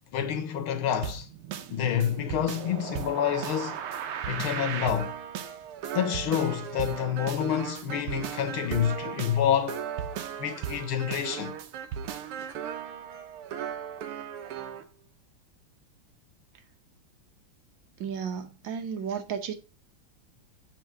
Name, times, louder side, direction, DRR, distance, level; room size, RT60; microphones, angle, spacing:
voice 1, 0.1-1.3 1.7-3.8 4.3-5.1 5.9-9.8 10.4-11.6, left 9 dB, 75° left, 1.8 m, -28 dB
sound 1, 1.0-14.8, right 9 dB, 85° right, 1.8 m, -36 dB
voice 2, 18.0-19.5, right 7 dB, 65° right, 1.5 m, -33 dB
7.1 x 4.5 x 4.6 m
omnidirectional pair, 2.4 m